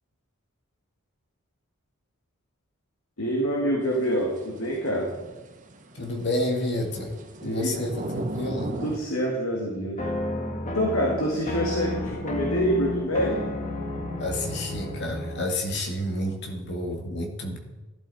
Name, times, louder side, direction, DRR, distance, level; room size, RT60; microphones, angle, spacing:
voice 1, 3.2-5.1 7.4-7.7 8.8-10.0 10.7-13.4, equal, 85° left, -1 dB, 2.3 m, -26 dB
sound 1, 3.8-9.0, right 1 dB, 40° right, 1.2 m, -37 dB
voice 2, 5.9-8.8 14.2-17.6, left 1 dB, 55° left, 3 dB, 2.1 m, -30 dB
sound 2, 10.0-15.5, left 2 dB, 35° left, 1.5 m, -31 dB
14.5 x 11.5 x 4.3 m, 1.1 s
head